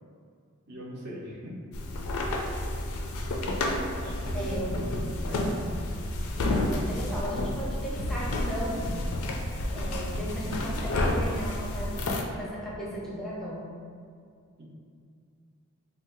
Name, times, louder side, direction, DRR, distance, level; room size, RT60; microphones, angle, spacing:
voice 1, 0.7-1.5 3.8-4.6 5.0-5.6 14.6-14.7, equal, 50° right, -4 dB, 0.5 m, -42 dB
sound 1, 1.7-12.2, left 1 dB, 65° left, 0.4 m, -30 dB
voice 2, 4.3-4.8 6.4-8.9 9.7-13.6, equal, ahead, -6 dB, 0.6 m, -36 dB
2.6 x 2.2 x 3.8 m, 2.2 s
head